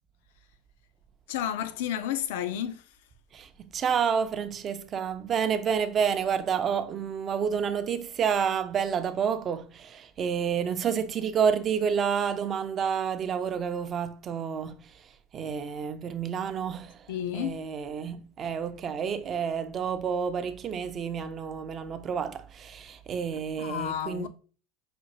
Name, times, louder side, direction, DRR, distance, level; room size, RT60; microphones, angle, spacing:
voice 1, 1.3-3.0 17.1-17.7 23.6-24.3, left 10 dB, 80° left, 0.4 m, -31 dB
voice 2, 3.3-14.8 15.3-17.0 17.3-24.3, right 7 dB, 35° right, 0.5 m, -29 dB
5.0 x 2.6 x 2.9 m
supercardioid pair, 120°, 0 cm